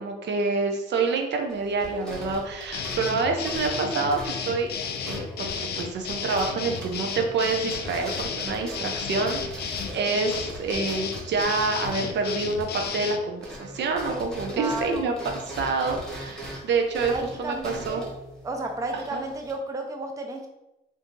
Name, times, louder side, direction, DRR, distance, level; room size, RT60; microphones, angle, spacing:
voice 1, 0.0-4.7 5.0-15.1 15.5-18.0 19.1-19.2, right 4 dB, 60° right, 3 dB, 0.7 m, -27 dB
sound 1, 1.5-13.1 13.4-19.5, equal, 5° left, 1.3 m, -40 dB
sound 2, 2.7-13.2, left 6 dB, 55° left, 0.4 m, -33 dB
voice 2, 14.5-15.1 17.0-18.1 18.4-20.5, right 2 dB, 15° right, 3 dB, 0.4 m, -32 dB
2.7 x 2.7 x 3.7 m, 0.96 s
cardioid pair, 90°, 20 cm